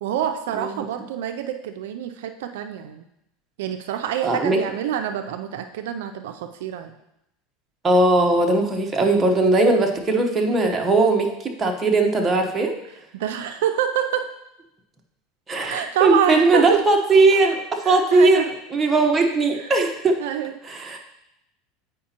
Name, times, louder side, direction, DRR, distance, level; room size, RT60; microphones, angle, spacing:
voice 1, 0.0-3.0 3.6-6.9 13.1-14.3 15.7-16.8 17.8-18.5 19.5-19.7 20.2-20.6, right 10 dB, 85° right, 7 dB, 0.4 m, -26 dB
voice 2, 0.5-0.8 4.2-4.6 7.8-12.7 15.5-20.2 20.6-21.0, right 2 dB, 20° right, 1 dB, 1.0 m, -19 dB
8.5 x 4.9 x 2.9 m, 0.84 s
supercardioid pair, 125°, 0 cm